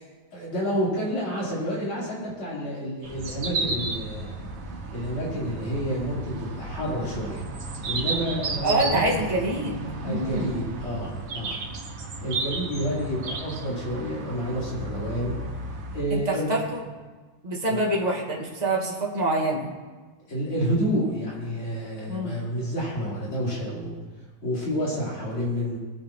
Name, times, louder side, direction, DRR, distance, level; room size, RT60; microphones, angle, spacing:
voice 1, 0.3-4.4 4.9-7.4 7.8-9.2 10.0-11.6 12.2-15.4 15.9-16.6 17.7-17.8 20.3-23.9 24.4-25.8, equal, 70° left, -7 dB, 5.2 m, -29 dB
sound 1, 3.0-16.0, right 3 dB, 65° right, 2.2 m, -33 dB
voice 2, 8.6-9.8 10.0-10.5 16.1-16.8 17.4-19.7 22.1-22.4, right 1 dB, 20° right, -3 dB, 2.1 m, -26 dB
22.5 x 9.2 x 3.3 m, 1.3 s
omnidirectional pair, 2.3 m